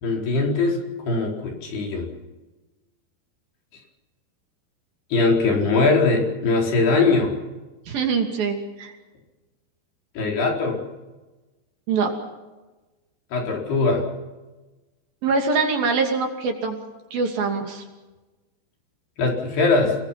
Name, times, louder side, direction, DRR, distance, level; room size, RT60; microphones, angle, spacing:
voice 1, 0.0-2.1 5.1-7.3 10.2-10.8 13.3-14.0 19.2-20.0, left 3 dB, 65° left, 0 dB, 6.5 m, -21 dB
voice 2, 7.9-8.9 11.9-12.1 15.2-16.8 17.1-17.8, right 4 dB, 60° right, 3 dB, 4.3 m, -23 dB
29.5 x 20.5 x 5.9 m, 1.2 s
omnidirectional pair, 4.9 m